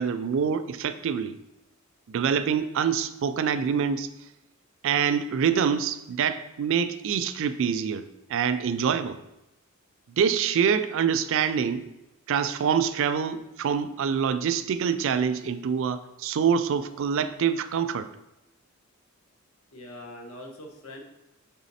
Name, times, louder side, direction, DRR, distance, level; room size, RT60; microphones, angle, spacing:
voice 1, 0.0-1.4 2.1-4.1 4.8-9.2 10.2-11.8 12.3-18.1, right 7 dB, 65° right, 11 dB, 0.4 m, -25 dB
voice 2, 19.7-21.0, left 1 dB, 80° left, 2 dB, 1.1 m, -42 dB
5.7 x 4.1 x 4.1 m, 0.94 s
head